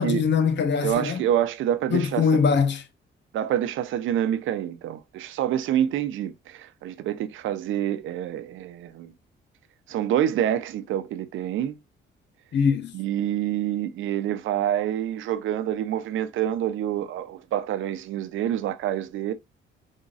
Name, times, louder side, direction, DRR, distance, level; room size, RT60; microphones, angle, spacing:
voice 1, 0.0-1.2 1.9-2.8 12.5-12.9, left 6 dB, 65° left, 1.0 m, -22 dB
voice 2, 0.8-2.4 3.3-9.1 9.9-11.8 12.9-19.3, right 11 dB, 80° right, 0.7 m, -27 dB
5.4 x 3.6 x 2.4 m
cardioid pair, 90°, 20 cm